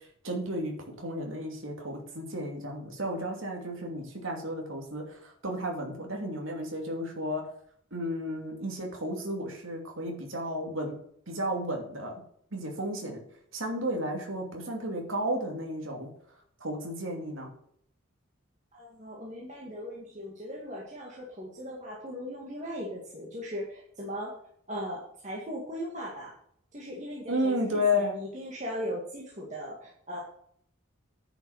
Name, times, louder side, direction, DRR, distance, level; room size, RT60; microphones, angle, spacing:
voice 1, 0.0-7.4 7.9-11.0 11.3-12.1 12.5-13.2 13.5-16.1 16.6-17.5 27.3-28.2, left 1 dB, 65° right, 1 dB, 2.6 m, -33 dB
voice 2, 18.7-24.4 24.7-26.3 26.7-30.2, equal, 35° right, -4 dB, 2.1 m, -38 dB
10.0 x 6.2 x 6.4 m, 0.67 s
head